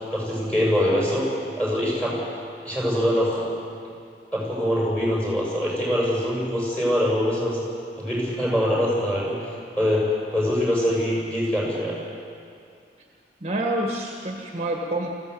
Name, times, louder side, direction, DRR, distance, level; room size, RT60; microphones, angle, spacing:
voice 1, 0.1-1.3 1.6-2.2 2.7-3.5 4.3-7.6 8.0-9.4 9.8-12.0, equal, 5° left, -5 dB, 6.8 m, -23 dB
voice 2, 13.4-15.1, right 1 dB, 35° right, 0 dB, 1.7 m, -27 dB
23.5 x 15.5 x 8.0 m, 2.4 s
head